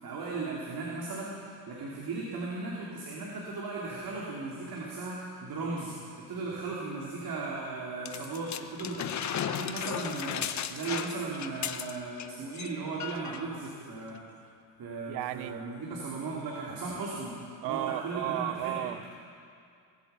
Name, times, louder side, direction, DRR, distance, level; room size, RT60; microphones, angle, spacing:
voice 1, 0.0-5.9 6.3-14.2 14.8-17.3 17.6-18.8, right 3 dB, 50° right, -4 dB, 3.0 m, -37 dB
sound 1, 8.1-12.3 12.5-12.7 13.0-13.4 14.2-14.3, left 9 dB, 40° left, 0.8 m, -35 dB
voice 2, 15.1-15.6 17.6-19.1, right 14 dB, 70° right, 14 dB, 0.6 m, -34 dB
20.5 x 9.3 x 6.9 m, 2.4 s
cardioid pair, 100°, 46 cm